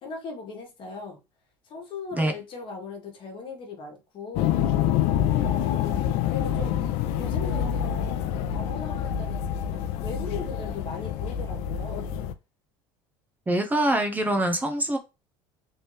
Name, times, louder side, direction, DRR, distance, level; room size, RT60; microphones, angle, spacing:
voice 1, 0.0-1.2 1.6-4.6 5.4-6.0 6.3-6.8 7.1-8.1 8.5-9.3 9.6-12.1, left 4 dB, 50° left, 1.4 m, -38 dB
sound 1, 4.4-12.3, left 10 dB, 65° left, 0.4 m, -27 dB
voice 2, 13.5-15.0, right 1 dB, 15° right, 0.7 m, -24 dB
3.2 x 2.7 x 3.2 m
hypercardioid pair, 80°, 11 cm